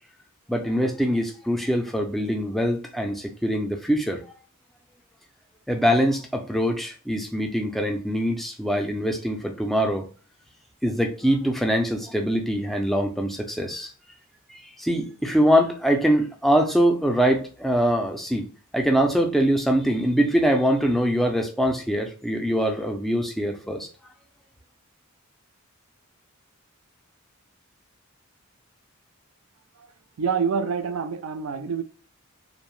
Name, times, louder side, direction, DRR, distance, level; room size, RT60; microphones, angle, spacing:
voice 1, 0.5-4.2 5.7-10.0 10.8-13.9 14.5-18.5 18.7-23.9, equal, ahead, 0.3 m, -23 dB
voice 2, 30.2-31.8, right 6 dB, 70° right, 0.4 m, -26 dB
2.6 x 2.1 x 3.0 m
head